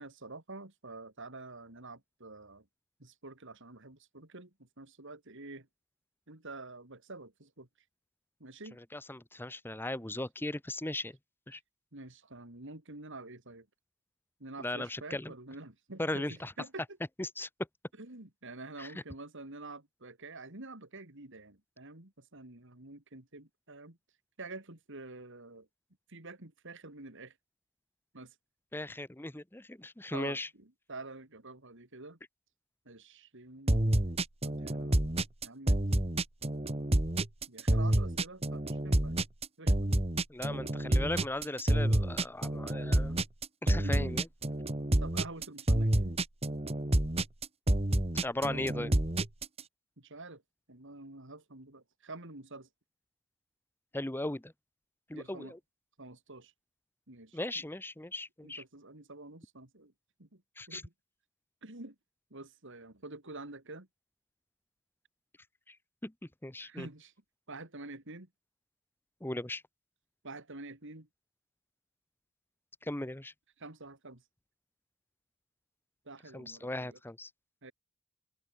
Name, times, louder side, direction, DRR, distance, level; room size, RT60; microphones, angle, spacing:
voice 1, 0.0-2.7 3.0-5.7 6.3-7.7 8.4-8.8 11.9-13.7 14.4-17.0 18.0-24.0 24.4-25.7 26.1-27.3 28.1-28.3 30.1-32.2 32.8-33.8 34.4-35.0 35.4-35.8 37.5-39.2 39.6-40.0 43.8-44.2 45.0-46.2 50.0-50.4 50.7-52.7 55.1-55.5 56.0-56.5 57.1-57.4 58.4-59.9 60.2-60.4 60.7-60.9 61.6-61.9 62.3-63.9 66.6-67.1 67.5-68.3 70.2-71.1 73.6-74.2 76.0-77.0 77.6-77.7, right 2 dB, 55° right, 3.2 m, -47 dB
voice 2, 8.9-11.2 11.5-11.6 14.6-15.3 16.0-16.5 17.2-17.5 18.8-18.9 28.7-30.5 40.3-43.2 43.6-44.3 48.2-48.9 53.9-54.5 55.1-55.6 57.3-58.6 60.6-60.8 65.7-65.8 66.0-66.1 66.4-66.9 69.2-69.6 72.8-73.3 76.3-77.3, left 1 dB, 10° left, 0.9 m, -37 dB
sound 1, 33.7-49.6, right 1 dB, 25° right, 1.6 m, -28 dB
open air
head